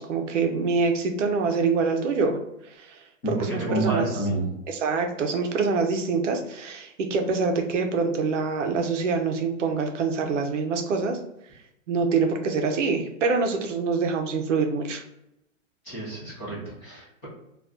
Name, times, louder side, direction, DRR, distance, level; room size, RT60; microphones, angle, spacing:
voice 1, 0.0-2.4 2.7-3.0 3.3-4.1 4.7-11.2 11.9-15.0, right 4 dB, 65° right, 4 dB, 0.6 m, -25 dB
voice 2, 3.2-4.5 15.8-17.3, right 2 dB, 10° left, -10 dB, 0.5 m, -29 dB
2.5 x 2.3 x 3.4 m, 0.82 s
hypercardioid pair, 170°, 40 cm